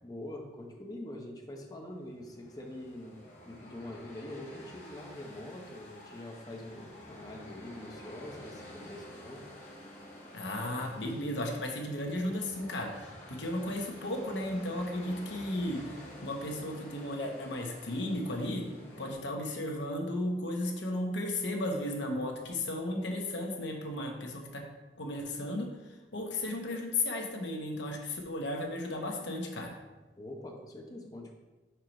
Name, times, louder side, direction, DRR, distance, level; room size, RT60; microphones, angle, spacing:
voice 1, 0.0-9.4 30.2-31.3, left 1 dB, 20° left, 1 dB, 0.8 m, -44 dB
sound 1, 1.8-19.1, left 1 dB, 40° left, 1.7 m, -50 dB
voice 2, 10.3-18.6 19.0-24.7 25.0-25.7 26.1-29.8, left 1 dB, 80° left, 2 dB, 1.1 m, -34 dB
4.7 x 4.6 x 5.2 m, 1.2 s
head